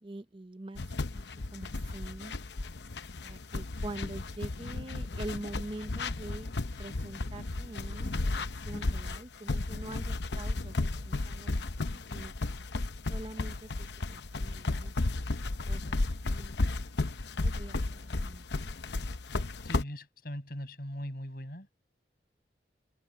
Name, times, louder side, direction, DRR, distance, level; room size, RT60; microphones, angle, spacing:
voice 1, 0.0-0.8 1.1-1.3 1.5-2.3 3.2-12.3 13.1-14.9 15.7-16.6 17.4-18.8, right 1 dB, 30° right, 0.7 m, -45 dB
sound 1, 0.7-19.8, left 2 dB, 80° left, 0.8 m, -34 dB
voice 2, 19.6-21.7, equal, 55° left, 6.1 m, -40 dB
open air
head